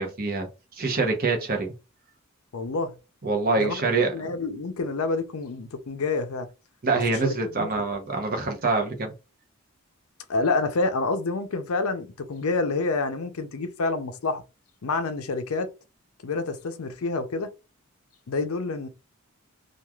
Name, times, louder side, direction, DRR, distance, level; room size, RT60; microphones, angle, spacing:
voice 1, 0.0-1.7 3.2-4.1 6.8-9.1, right 3 dB, 40° right, 0.8 m, -25 dB
voice 2, 2.5-2.9 3.6-6.5 7.1-7.7 10.3-14.4 14.8-15.7 16.2-17.5 18.3-18.9, left 3 dB, 70° left, 0.5 m, -28 dB
3.0 x 2.4 x 2.3 m
head